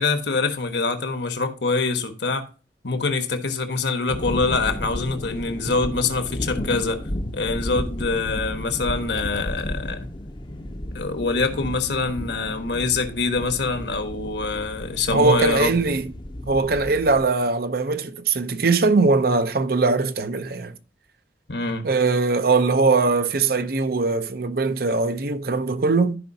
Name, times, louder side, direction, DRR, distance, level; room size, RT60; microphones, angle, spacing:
voice 1, 0.0-2.4 2.8-7.0 7.3-10.1 10.9-15.9 21.5-21.9, left 3 dB, 70° left, 1.3 m, -25 dB
sound 1, 4.1-17.2, left 1 dB, 25° left, 0.7 m, -33 dB
voice 2, 15.1-16.1 16.5-20.8 21.8-26.2, right 3 dB, 55° right, 0.7 m, -21 dB
14.0 x 5.2 x 2.7 m
head